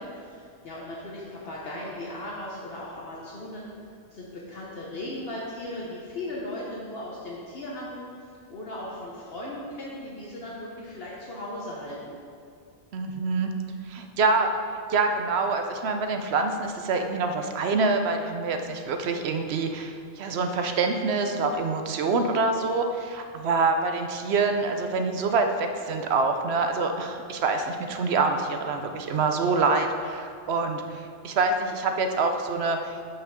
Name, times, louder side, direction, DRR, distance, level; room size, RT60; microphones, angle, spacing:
voice 1, 0.0-3.7 4.1-8.0 8.5-12.2, left 1 dB, 60° left, -5 dB, 1.2 m, -37 dB
voice 2, 12.9-13.5 13.9-14.5 14.9-32.9, right 3 dB, 70° right, 5 dB, 0.9 m, -26 dB
5.7 x 5.6 x 6.6 m, 2.3 s
omnidirectional pair, 1.2 m